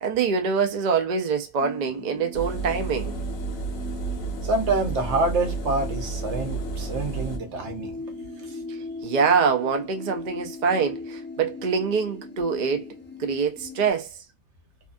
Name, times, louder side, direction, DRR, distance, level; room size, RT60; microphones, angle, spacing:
voice 1, 0.0-3.2 9.0-12.8 13.2-14.1, right 5 dB, 55° right, 0.5 m, -24 dB
sound 1, 1.6-13.9, left 2 dB, 15° left, 0.3 m, -39 dB
Engine, 2.3-7.4, right 3 dB, 60° left, 0.8 m, -31 dB
voice 2, 4.4-8.0 8.4-8.6, right 2 dB, 75° right, 1.0 m, -27 dB
2.6 x 2.3 x 2.5 m
omnidirectional pair, 1.2 m